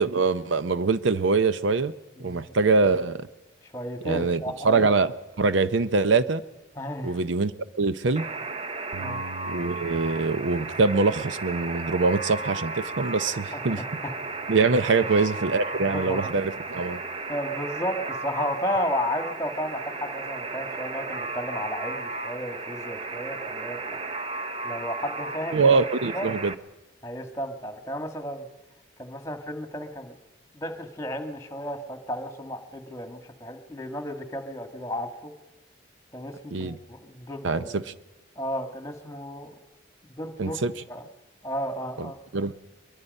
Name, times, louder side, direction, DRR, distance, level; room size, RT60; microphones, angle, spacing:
voice 1, 0.0-1.9 2.2-3.3 4.0-5.1 5.4-6.4 7.0-7.5 7.8-8.3 9.4-13.8 14.5-17.0 25.5-26.5 36.5-36.8 37.4-37.9 40.4-40.7 42.0-42.5, right 4 dB, 70° right, 0.6 m, -24 dB
voice 2, 2.2-2.6 3.6-4.8 6.7-7.2 9.0-9.2 13.3-14.1 15.0-15.1 15.7-16.3 17.3-23.8 24.6-25.6 26.1-26.3 27.0-28.5 29.0-30.1 30.5-35.3 36.1-37.8 38.3-39.5 40.2-40.6 40.9-41.0 41.4-42.2, equal, 15° left, 1.7 m, -33 dB
Alarm, 8.2-26.5, right 3 dB, 30° right, 0.7 m, -34 dB
Bass guitar, 8.9-13.4 14.0-15.2, right 4 dB, 85° right, 1.1 m, -46 dB
23.0 x 22.5 x 5.4 m
head